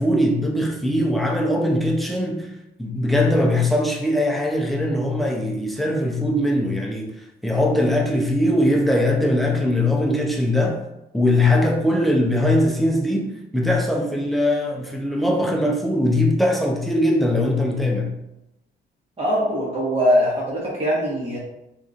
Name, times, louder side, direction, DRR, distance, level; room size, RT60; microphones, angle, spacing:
voice 1, 0.0-2.5 2.8-10.8 11.1-18.1, left 1 dB, ahead, 0.5 m, -21 dB
voice 2, 19.2-21.4, equal, 30° right, 1.2 m, -21 dB
2.9 x 2.5 x 2.4 m
cardioid pair, 90°, 20 cm